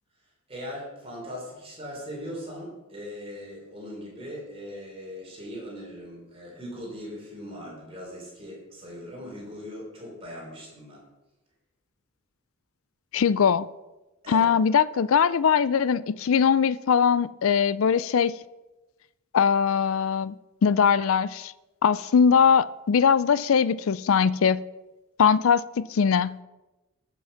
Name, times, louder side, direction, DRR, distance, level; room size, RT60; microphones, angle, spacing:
voice 1, 0.5-11.0 14.2-14.5, equal, 25° right, 3.7 m, -40 dB
voice 2, 13.1-13.7 14.3-18.3 19.3-20.3 20.6-21.5 21.8-24.6 25.2-26.4, left 6 dB, 65° left, 0.4 m, -21 dB
13.0 x 6.1 x 5.7 m
head